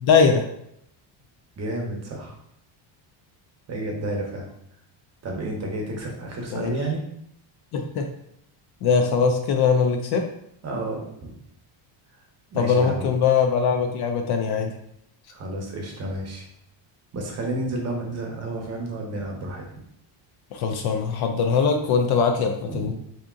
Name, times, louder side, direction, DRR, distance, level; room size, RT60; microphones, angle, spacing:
voice 1, 0.0-0.5 6.5-6.7 7.7-8.1 8.8-10.3 12.6-14.7 20.5-22.9, left 5 dB, 50° left, 5 dB, 0.5 m, -21 dB
voice 2, 1.6-2.4 3.7-4.5 5.2-7.0 10.6-11.3 12.5-13.1 15.3-16.4 17.1-19.6 22.7-22.9, right 1 dB, 30° right, 0 dB, 0.8 m, -31 dB
3.5 x 2.8 x 3.7 m, 0.73 s
cardioid pair, 150°, 50 cm